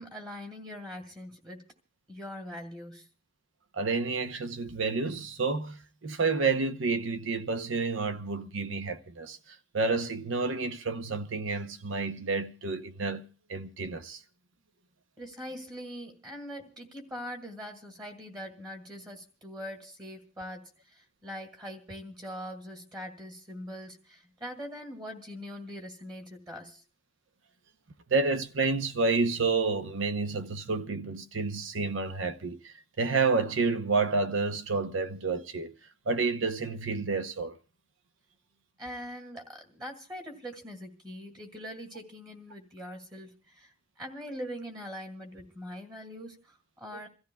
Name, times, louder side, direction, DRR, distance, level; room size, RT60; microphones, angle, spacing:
voice 1, 0.0-1.6 2.1-3.1 15.2-26.8 38.8-43.7 44.0-47.1, equal, 20° right, 2.0 m, -42 dB
voice 2, 3.7-9.4 9.7-13.2 13.5-14.2 28.1-35.7 36.1-37.6 46.9-47.0, right 4 dB, 80° right, 0.8 m, -29 dB
28.0 x 14.0 x 2.3 m
head